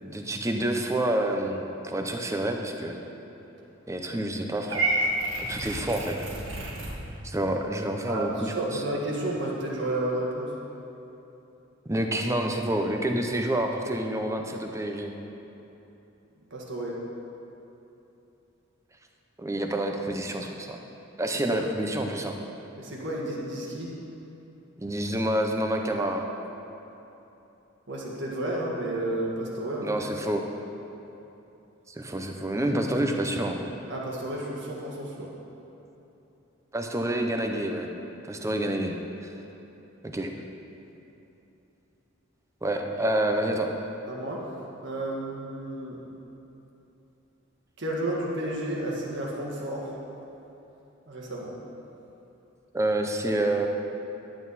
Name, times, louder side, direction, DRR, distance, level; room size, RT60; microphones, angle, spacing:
voice 1, 0.0-3.0 3.9-4.9 5.4-6.2 7.2-8.8 11.9-15.1 19.4-20.8 21.2-22.4 24.8-26.3 29.8-30.4 31.9-33.6 36.7-37.9 38.2-39.0 40.0-40.3 42.6-43.7 52.7-53.7, right 1 dB, 15° right, 3 dB, 0.7 m, -28 dB
Purr / Meow, 4.7-6.9, right 2 dB, 85° right, 1.6 m, -29 dB
voice 2, 8.1-10.6 16.5-17.0 21.5-21.6 22.8-24.0 27.9-29.9 33.9-35.3 44.1-44.5 44.8-46.0 47.8-50.0 51.1-51.6, right 1 dB, 65° right, -3 dB, 1.7 m, -31 dB
11.0 x 9.2 x 4.2 m, 3.0 s
head